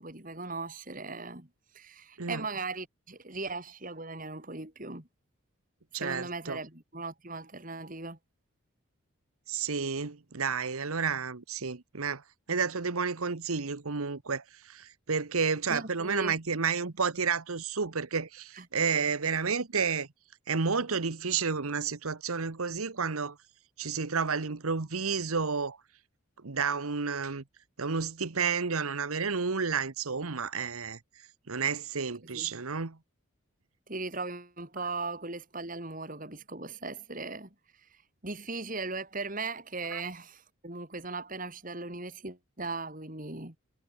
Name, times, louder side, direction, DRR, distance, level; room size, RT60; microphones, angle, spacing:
voice 1, 0.0-1.5 1.7-5.1 6.0-8.2 15.7-16.4 18.6-18.7 32.3-32.5 33.9-37.5 38.2-43.5, right 3 dB, 40° right, 2.9 m, -38 dB
voice 2, 5.9-6.6 9.5-12.2 12.5-20.1 20.5-23.4 23.8-25.8 26.4-27.4 27.8-31.0 31.5-33.0 39.9-40.0, right 5 dB, 85° right, 1.2 m, -31 dB
head